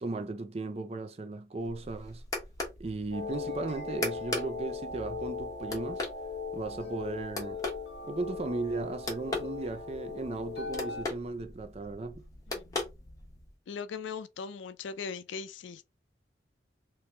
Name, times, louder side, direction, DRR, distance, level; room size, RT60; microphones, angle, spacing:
voice 1, 0.0-2.2 2.8-6.0 6.5-7.6 8.1-12.2, right 3 dB, 35° right, 0.4 m, -36 dB
sound 1, 1.6-13.5, left 2 dB, 20° left, 1.0 m, -40 dB
sound 2, 3.1-11.1, left 4 dB, 60° left, 0.9 m, -39 dB
voice 2, 12.5-12.8 13.7-15.9, left 5 dB, 85° left, 0.4 m, -39 dB
3.0 x 2.9 x 3.3 m
head